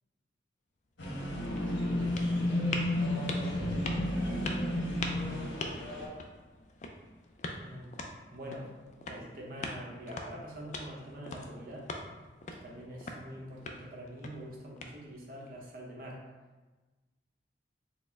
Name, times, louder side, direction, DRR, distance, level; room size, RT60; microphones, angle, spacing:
sound 1, 0.8-15.4, left 2 dB, 40° left, 0.3 m, -43 dB
sound 2, 1.0-6.1, left 1 dB, 85° left, 1.0 m, -32 dB
voice 1, 1.7-5.6 7.6-8.0 8.3-8.7 9.1-11.9 12.5-16.2, equal, 50° right, -3 dB, 0.7 m, -45 dB
4.2 x 2.1 x 3.4 m, 1.2 s
head